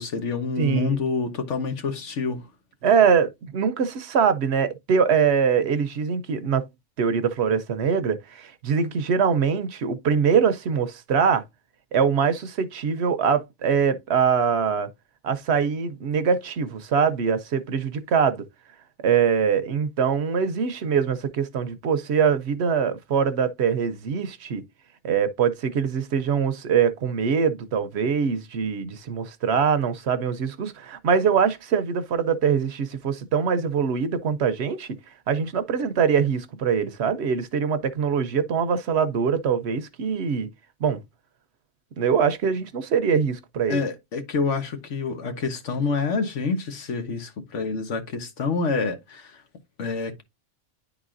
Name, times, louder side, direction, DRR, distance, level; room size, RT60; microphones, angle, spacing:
voice 1, 0.0-2.4 43.7-49.4 49.8-50.2, left 4 dB, 80° left, 1.5 m, -27 dB
voice 2, 0.6-0.9 2.8-6.6 7.0-11.4 11.9-14.9 15.2-18.4 19.0-24.6 25.0-35.0 35.3-40.5 40.8-41.0 42.0-43.8, right 6 dB, 65° right, 0.9 m, -23 dB
10.0 x 4.0 x 2.5 m
omnidirectional pair, 1.2 m